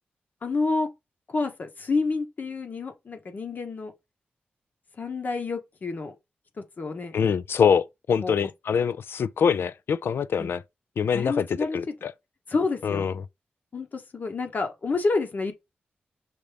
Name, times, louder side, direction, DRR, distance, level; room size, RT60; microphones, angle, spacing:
voice 1, 0.4-0.9 1.3-3.9 5.0-6.1 6.6-7.1 8.2-8.5 10.4-10.5 11.1-11.8 12.5-13.0 13.7-15.5, left 3 dB, 50° left, 1.0 m, -29 dB
voice 2, 7.1-10.6 11.0-11.5 11.7-12.1 12.8-13.1, left 7 dB, 80° left, 0.4 m, -24 dB
6.0 x 2.6 x 3.3 m
wide cardioid pair, 110°, 4 cm